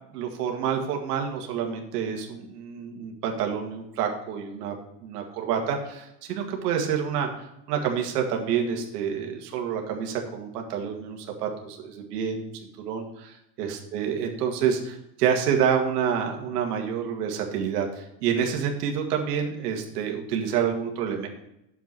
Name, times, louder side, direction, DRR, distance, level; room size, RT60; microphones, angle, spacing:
voice 1, 0.1-4.8 5.0-12.5 12.8-21.3, right 7 dB, 85° right, 2 dB, 2.1 m, -28 dB
9.3 x 7.1 x 4.5 m, 0.82 s
supercardioid pair, 140°, 46 cm